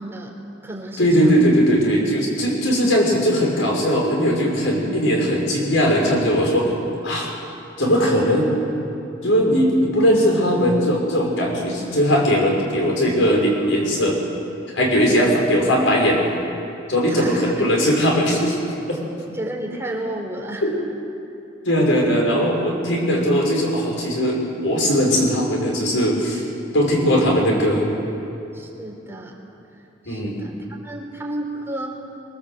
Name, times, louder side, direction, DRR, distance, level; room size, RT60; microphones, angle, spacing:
voice 1, 0.0-1.4 15.1-15.4 17.1-17.7 19.3-20.7 28.5-29.4 30.0-30.5 30.8-31.9, right 1 dB, 15° right, -1 dB, 3.9 m, -32 dB
voice 2, 1.0-6.7 7.0-7.3 7.8-8.5 9.2-14.2 14.7-16.2 16.9-18.6 18.9-19.0 20.6-20.7 21.6-26.5 26.7-27.9 30.0-30.4, equal, 80° left, -1 dB, 5.8 m, -19 dB
24.5 x 23.0 x 8.0 m, 2.8 s
head